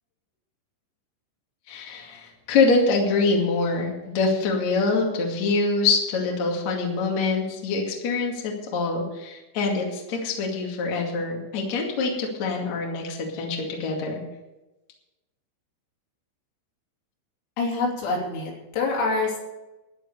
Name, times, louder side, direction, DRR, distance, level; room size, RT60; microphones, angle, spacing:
voice 1, 1.7-14.2, left 3 dB, 45° left, 0 dB, 2.6 m, -25 dB
voice 2, 17.6-19.4, left 3 dB, 85° left, -2 dB, 5.8 m, -26 dB
12.5 x 9.7 x 6.7 m, 1.0 s
omnidirectional pair, 6.0 m